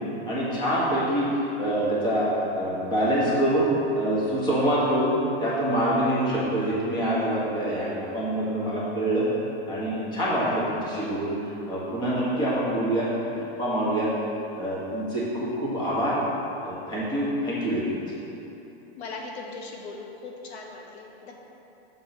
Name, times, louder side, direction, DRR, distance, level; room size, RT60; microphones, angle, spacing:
voice 1, 0.2-2.3 2.5-3.7 3.9-9.3 9.7-11.3 11.7-13.1 13.4-14.1 14.6-16.2 16.6-18.0, right 1 dB, 15° left, -7 dB, 1.2 m, -25 dB
voice 2, 19.0-21.3, left 3 dB, 80° left, 0 dB, 1.1 m, -39 dB
6.8 x 3.8 x 5.9 m, 2.9 s
supercardioid pair, 165°, 32 cm